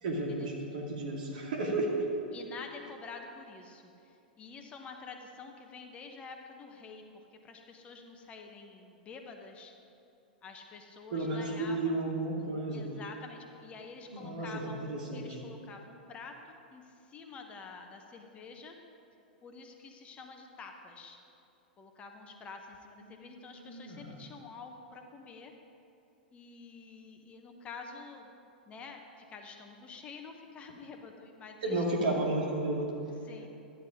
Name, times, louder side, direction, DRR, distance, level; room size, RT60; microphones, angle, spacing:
voice 1, 0.0-2.1 11.1-12.9 14.1-15.4 23.0-24.2 31.6-33.0, right 2 dB, 55° right, -1 dB, 2.5 m, -33 dB
voice 2, 2.3-9.7 10.4-12.0 12.7-18.8 19.4-21.2 21.8-25.5 26.3-28.3 28.6-31.8 33.3-33.5, left 4 dB, 25° left, 4 dB, 1.1 m, -48 dB
13.5 x 10.5 x 5.1 m, 2.7 s
figure-of-eight pair, 95°, 5 cm